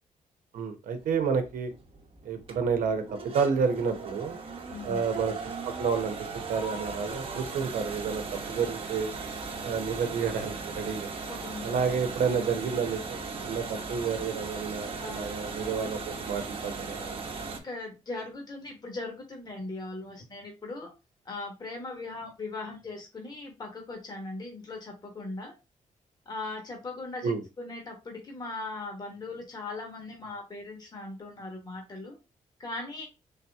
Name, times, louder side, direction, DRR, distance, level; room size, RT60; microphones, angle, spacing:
voice 1, 0.5-1.7 2.2-3.0 3.3-4.4 4.8-5.3 5.6-6.2 6.5-9.1 9.6-11.1 11.6-17.2 27.2-27.4, right 6 dB, 80° right, 7 dB, 0.8 m, -30 dB
sound 1, 1.0-17.6, right 4 dB, 40° right, 1.0 m, -38 dB
voice 2, 4.7-5.0 11.3-11.8 15.0-15.2 17.6-20.9 21.2-25.5 26.3-27.3 27.6-32.2 32.6-33.1, left 2 dB, 30° left, 1 dB, 1.2 m, -39 dB
3.7 x 2.8 x 3.4 m, 0.26 s
cardioid pair, 110°, 14 cm